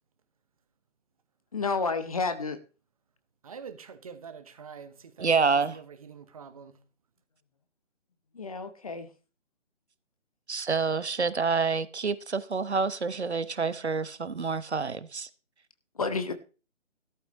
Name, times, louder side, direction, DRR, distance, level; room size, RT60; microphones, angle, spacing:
voice 1, 1.5-2.6 8.3-9.1 16.0-16.3, left 4 dB, 30° left, 0.9 m, -30 dB
voice 2, 3.4-5.3 5.7-6.8, right 6 dB, 30° right, 1.3 m, -45 dB
voice 3, 5.2-5.8 10.5-15.3, right 5 dB, 60° right, 1.1 m, -27 dB
14.5 x 13.0 x 3.1 m
figure-of-eight pair, 150°, 37 cm